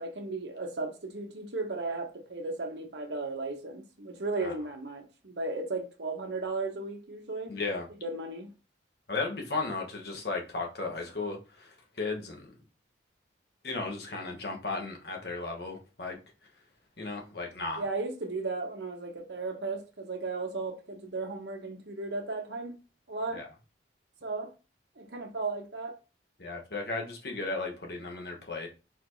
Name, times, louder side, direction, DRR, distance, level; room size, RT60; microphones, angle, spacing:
voice 1, 0.0-7.5 8.0-8.5 17.8-22.7 23.1-23.5 24.2-24.5 25.0-26.0, right 3 dB, 70° right, 1.1 m, -35 dB
voice 2, 7.5-7.9 9.1-12.6 13.6-16.2 17.0-17.8 23.3-23.5 26.4-28.7, left 3 dB, 60° left, 1.2 m, -35 dB
4.6 x 4.2 x 2.7 m
head